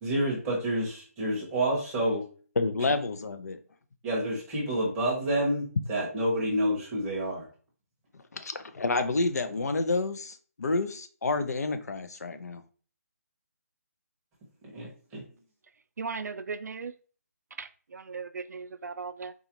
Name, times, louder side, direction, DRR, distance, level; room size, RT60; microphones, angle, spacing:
voice 1, 0.0-2.2 4.0-7.5 14.7-15.2, right 1 dB, 10° right, 0.7 m, -29 dB
voice 2, 2.6-3.6 8.3-12.6, left 3 dB, 75° left, 0.5 m, -29 dB
voice 3, 16.0-16.9 17.6-19.3, right 5 dB, 90° right, 0.4 m, -37 dB
3.9 x 2.4 x 2.8 m
hypercardioid pair, 175°, 9 cm